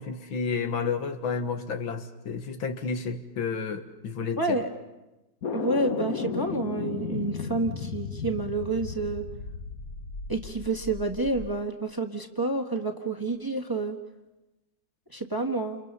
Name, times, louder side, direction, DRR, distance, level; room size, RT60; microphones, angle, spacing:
voice 1, 0.0-4.6, left 5 dB, 90° left, 7 dB, 2.3 m, -31 dB
voice 2, 4.4-4.7 5.5-9.3 10.3-14.0 15.1-15.8, right 2 dB, 10° right, 3 dB, 1.4 m, -29 dB
sound 1, 5.4-11.5, left 6 dB, 50° left, 1.5 m, -35 dB
29.5 x 29.0 x 5.6 m, 1.0 s
omnidirectional pair, 2.1 m